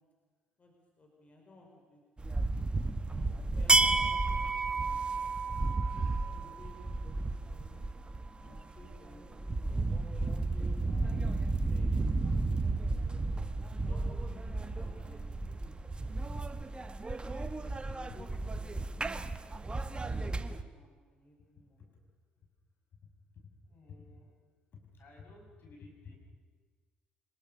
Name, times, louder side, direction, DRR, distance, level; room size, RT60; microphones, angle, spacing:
voice 1, 0.6-2.0 3.1-5.0 5.5-7.8 8.4-9.2 9.7-9.9 10.1-11.2 11.5-11.9 12.8-15.3 15.6-16.9 17.5-19.2 19.6-21.8, left 1 dB, 30° left, 1 dB, 5.3 m, -57 dB
sound 1, 2.2-20.6, right 3 dB, 25° right, 1.3 m, -32 dB
voice 2, 23.3-24.3 24.7-26.2, left 4 dB, 55° left, 1 dB, 6.3 m, -53 dB
24.5 x 21.0 x 6.8 m, 1.5 s
hypercardioid pair, 50°, 4 cm